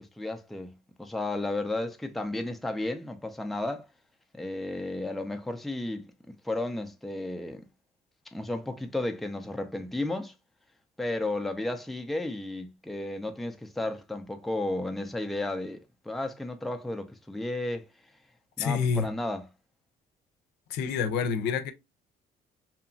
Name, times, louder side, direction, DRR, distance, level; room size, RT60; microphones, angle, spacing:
voice 1, 0.0-3.9 4.3-7.6 8.3-10.3 11.0-17.9 18.6-19.5, left 2 dB, ahead, 0.3 m, -33 dB
voice 2, 18.6-19.1 20.7-21.7, left 6 dB, 80° left, 0.5 m, -27 dB
2.8 x 2.2 x 2.5 m
cardioid pair, 110°, 17 cm